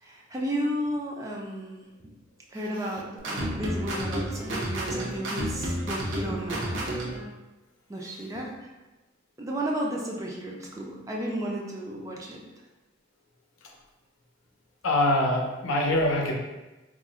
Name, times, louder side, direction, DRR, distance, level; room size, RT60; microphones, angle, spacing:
voice 1, 0.0-2.1 2.5-7.0 7.9-8.7 9.4-12.4, equal, 15° right, -2 dB, 0.3 m, -33 dB
sound 1, 3.2-7.3, right 1 dB, 70° right, 0.6 m, -31 dB
voice 2, 14.8-16.3, left 1 dB, 85° left, 0 dB, 0.5 m, -24 dB
2.4 x 2.0 x 3.8 m, 1.1 s
head